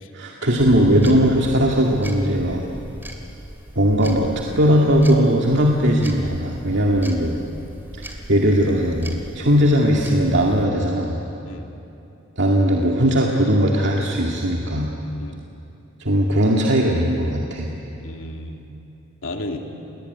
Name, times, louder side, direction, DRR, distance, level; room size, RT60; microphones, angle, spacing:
voice 1, 0.1-2.6 3.8-4.3 4.6-7.4 7.9-11.2 12.4-14.9 16.0-17.7, equal, 60° right, -1 dB, 2.2 m, -18 dB
sound 1, 0.6-10.7, equal, 10° right, 2.6 m, -38 dB
voice 2, 18.0-18.7 19.2-19.6, left 1 dB, 70° left, 3 dB, 2.8 m, -33 dB
30.0 x 21.0 x 9.5 m, 2.9 s
head